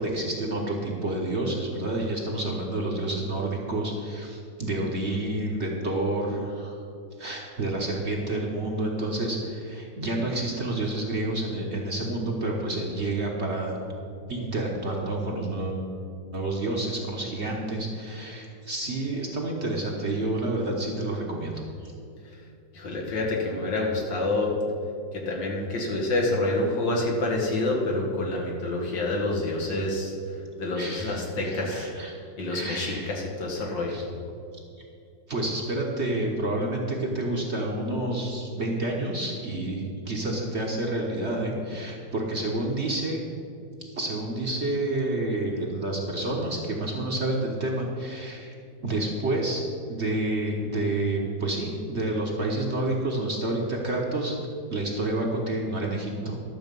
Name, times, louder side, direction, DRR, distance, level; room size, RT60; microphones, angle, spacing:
voice 1, 0.0-6.7 7.2-13.8 14.3-15.9 16.3-21.5 21.8-21.9 30.8-32.2 32.5-33.2 33.6-34.1 35.3-43.2 43.9-48.5 48.8-49.6 49.9-54.4 54.7-56.4, right 2 dB, 40° right, -1 dB, 1.3 m, -29 dB
voice 2, 22.7-24.5 25.1-30.1 30.6-31.9 32.4-33.9, left 2 dB, 75° left, -2 dB, 2.4 m, -27 dB
12.0 x 7.0 x 5.3 m, 2.6 s
omnidirectional pair, 2.0 m